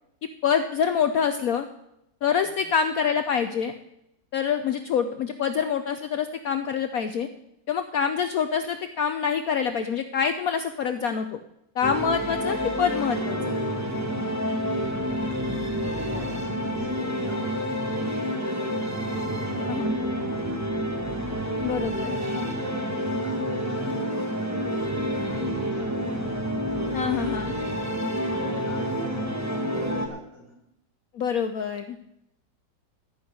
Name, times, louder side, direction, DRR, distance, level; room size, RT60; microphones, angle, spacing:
voice 1, 0.4-1.7 2.2-3.7 4.3-7.3 7.7-11.4 11.8-13.4 19.7-19.9 21.6-22.2 26.9-27.5 31.1-32.0, left 7 dB, 65° left, 8 dB, 1.0 m, -26 dB
sound 1, 11.8-30.1, equal, 10° right, 1.0 m, -28 dB
voice 2, 15.7-17.8 18.1-21.0 22.4-26.0 26.7-27.5 28.2-30.5, right 2 dB, 45° right, -3 dB, 5.1 m, -43 dB
13.5 x 6.2 x 9.4 m, 0.82 s
omnidirectional pair, 2.0 m